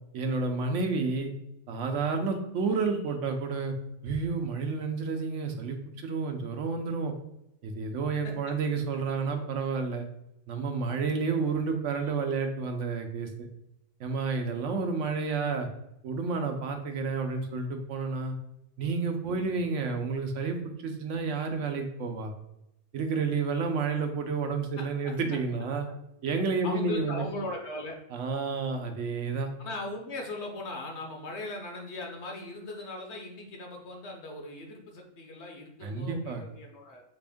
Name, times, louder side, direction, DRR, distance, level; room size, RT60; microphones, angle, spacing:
voice 1, 0.1-1.3 1.7-3.7 4.0-7.1 7.6-10.1 10.5-13.5 14.0-15.7 16.0-18.4 18.8-22.3 22.9-25.9 26.2-27.3 28.1-29.5 35.8-36.4, right 4 dB, 80° right, 5 dB, 1.0 m, -30 dB
voice 2, 26.6-28.0 29.6-37.0, left 2 dB, 65° left, 1 dB, 1.1 m, -39 dB
5.7 x 2.5 x 3.5 m, 0.84 s
omnidirectional pair, 1.3 m